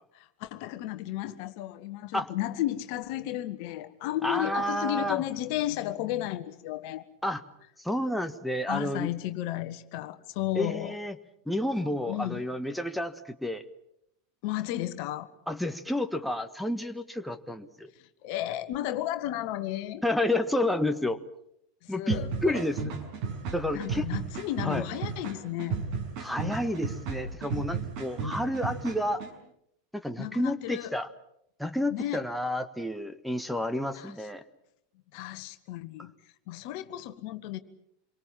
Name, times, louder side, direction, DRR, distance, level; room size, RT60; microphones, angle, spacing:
voice 1, 0.1-7.0 8.7-11.0 12.1-12.4 14.4-15.3 18.2-20.0 21.8-22.6 23.7-25.8 30.2-30.9 31.9-32.2 33.9-34.1 35.1-36.1 36.5-37.6, left 14 dB, 50° left, 11 dB, 1.5 m, -33 dB
voice 2, 4.2-5.2 7.2-7.4 7.8-9.1 10.6-11.1 11.5-13.6 15.5-17.9 20.0-21.2 21.9-22.8 23.5-24.1 24.6-24.8 26.2-29.2 29.9-31.1 31.6-34.4 36.0-36.1, left 1 dB, ahead, 7 dB, 1.5 m, -30 dB
sound 1, 22.1-29.3, right 5 dB, 50° right, 5.8 m, -34 dB
27.0 x 23.5 x 7.4 m, 0.76 s
figure-of-eight pair, 85°, 0 cm